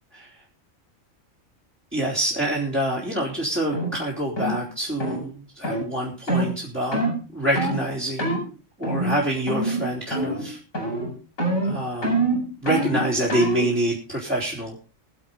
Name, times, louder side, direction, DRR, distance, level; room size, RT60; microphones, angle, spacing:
voice 1, 1.9-7.0 7.3-8.4 8.8-10.6 11.6-12.3 12.6-14.7, right 1 dB, 10° right, -5 dB, 3.7 m, -26 dB
sound 1, 3.7-3.9 4.4-4.6 5.0-5.2 5.6-5.8 6.3-6.5 6.9-7.2 7.6-7.8 8.2-8.4 8.8-9.2 9.5-9.8 10.1-10.5 10.7-11.1 11.4-13.7, right 1 dB, 85° left, 5.8 m, -25 dB
22.5 x 7.7 x 3.9 m, 0.34 s
omnidirectional pair, 1.4 m